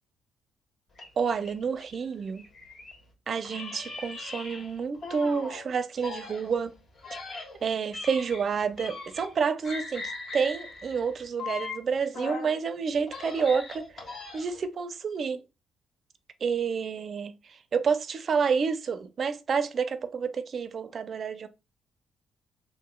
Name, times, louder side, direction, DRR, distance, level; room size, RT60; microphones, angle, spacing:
sound 1, 0.9-3.0 3.4-5.6 6.0-9.4 9.6-12.6 13.0-14.7, left 3 dB, 60° left, 1.3 m, -40 dB
voice 1, 1.2-2.5 3.3-6.7 7.6-14.0 14.3-15.4 16.4-21.5, right 6 dB, 50° right, 0.4 m, -29 dB
3.6 x 3.0 x 2.2 m
cardioid pair, 90°, 0 cm